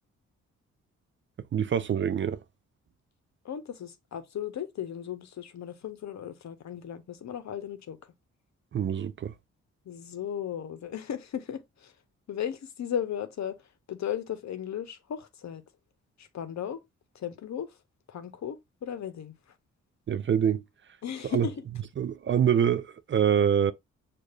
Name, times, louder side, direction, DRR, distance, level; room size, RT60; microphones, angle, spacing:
voice 1, 1.5-2.4 8.7-9.3 20.1-20.6 21.2-21.5 22.0-23.7, right 8 dB, 40° right, 0.4 m, -25 dB
voice 2, 3.4-8.0 9.8-11.9 12.3-13.6 13.9-15.6 16.2-16.8 17.1-17.8 18.1-19.3 21.0-21.7, left 9 dB, 60° left, 0.8 m, -36 dB
6.4 x 2.5 x 2.4 m
supercardioid pair, 50°, 31 cm